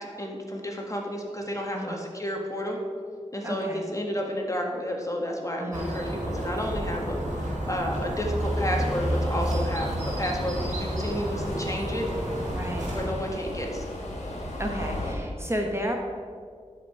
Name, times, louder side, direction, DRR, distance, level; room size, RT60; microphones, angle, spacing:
voice 1, 0.0-2.8 3.3-9.9 10.2-12.1 12.9-13.8 14.6-14.8, equal, 25° left, 0 dB, 1.7 m, -31 dB
voice 2, 3.4-3.8 5.6-5.9 12.5-12.9 14.6-16.0, equal, 20° right, 2 dB, 1.1 m, -32 dB
sound 1, 5.7-13.1, equal, 80° right, 2.2 m, -30 dB
Subway metro underground, 8.4-15.1, left 1 dB, 75° left, 2.2 m, -37 dB
11.5 x 5.2 x 4.9 m, 2.1 s
cardioid pair, 45°, 12 cm